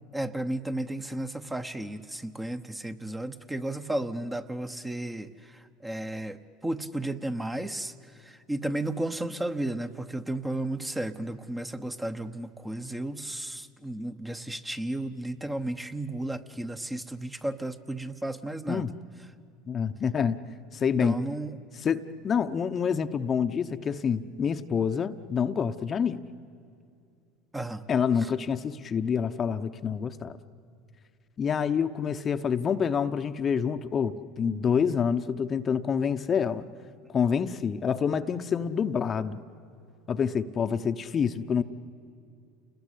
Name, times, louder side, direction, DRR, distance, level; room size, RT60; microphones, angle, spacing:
voice 1, 0.1-18.9 21.0-21.6 27.5-27.8 28.2-28.3, right 1 dB, 10° right, 9 dB, 1.1 m, -33 dB
voice 2, 19.7-20.4 20.7-21.2 21.8-26.2 27.9-30.4 31.4-36.6 37.1-39.4 40.1-41.6, left 7 dB, 35° left, 9 dB, 0.9 m, -27 dB
28.5 x 21.0 x 8.5 m, 2.5 s
supercardioid pair, 95°, 0 cm